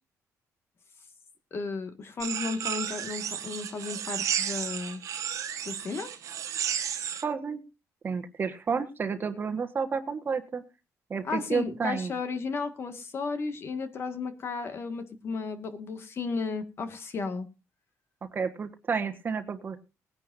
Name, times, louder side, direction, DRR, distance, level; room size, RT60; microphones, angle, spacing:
voice 1, 1.5-5.0 5.6-6.1 11.2-17.5, left 4 dB, 45° left, 8 dB, 1.9 m, -34 dB
sound 1, 2.2-7.2, right 9 dB, 60° right, 1.3 m, -33 dB
voice 2, 7.2-7.6 8.0-10.6 11.1-12.1 18.2-19.8, right 5 dB, 35° right, 8 dB, 1.4 m, -31 dB
20.5 x 10.5 x 2.7 m, 0.28 s
cardioid pair, 135°, 6 cm